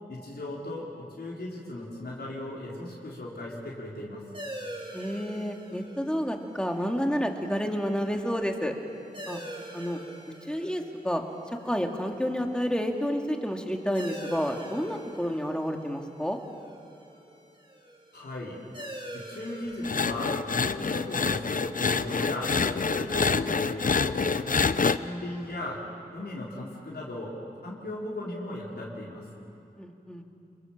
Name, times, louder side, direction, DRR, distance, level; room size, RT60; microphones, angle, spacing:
voice 1, 0.1-4.2 18.1-18.6 19.1-24.2 25.0-25.8 26.1-27.4 27.6-29.3, left 1 dB, 85° left, -5 dB, 4.3 m, -37 dB
sound 1, 4.3-23.5, right 1 dB, 30° right, 3.6 m, -46 dB
voice 2, 4.9-8.7 9.3-9.4 9.7-10.0 10.5-11.2 11.6-16.4 29.8-30.2, equal, 5° left, 2 dB, 2.6 m, -30 dB
sound 2, 19.8-25.0, left 5 dB, 55° left, 0.7 m, -27 dB
29.5 x 22.5 x 7.6 m, 2.6 s
wide cardioid pair, 60°, 16 cm